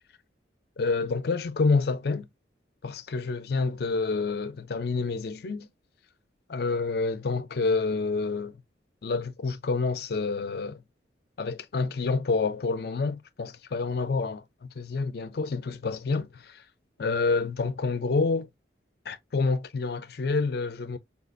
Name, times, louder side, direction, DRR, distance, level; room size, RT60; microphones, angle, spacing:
voice 1, 0.8-2.3 2.8-5.7 6.5-8.6 9.0-10.8 11.4-16.6 17.0-18.5 19.1-21.0, left 4 dB, 55° left, 0.4 m, -28 dB
3.6 x 2.5 x 2.4 m
head